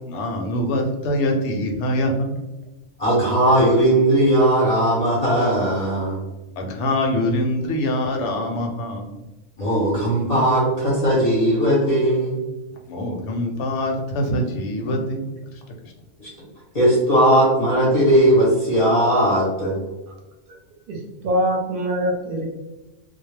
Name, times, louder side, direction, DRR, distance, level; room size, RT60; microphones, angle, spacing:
voice 1, 0.1-2.4 6.6-9.2 12.9-15.3, left 1 dB, 70° left, 2 dB, 0.8 m, -24 dB
voice 2, 3.0-6.2 9.6-12.4 14.8-15.0 16.2-16.3 16.7-19.8, right 1 dB, 40° left, -6 dB, 0.6 m, -18 dB
voice 3, 20.9-22.5, equal, 55° right, 0 dB, 0.7 m, -23 dB
2.2 x 2.0 x 3.1 m, 1.1 s
omnidirectional pair, 1.3 m